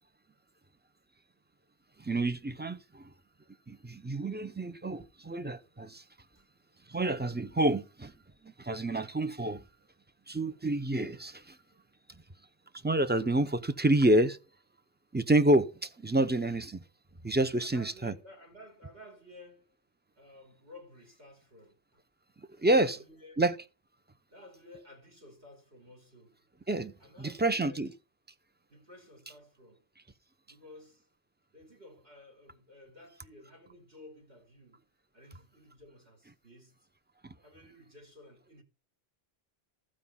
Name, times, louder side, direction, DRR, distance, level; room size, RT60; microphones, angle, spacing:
voice 1, 2.0-3.0 3.7-6.0 6.9-8.1 8.4-9.6 10.3-11.6 12.8-14.4 15.1-16.8 17.2-18.1 22.6-23.0 23.4-23.5 26.7-26.9 27.2-27.9 37.2-37.3, right 1 dB, 15° right, 0.5 m, -28 dB
voice 2, 17.6-19.8 20.2-22.0 22.7-23.5 24.3-26.4 27.0-27.9 28.7-29.8 30.5-31.1 31.5-34.8 35.1-36.9 37.4-38.6, left 1 dB, 65° right, 3.1 m, -54 dB
15.0 x 5.0 x 5.5 m
omnidirectional pair, 1.1 m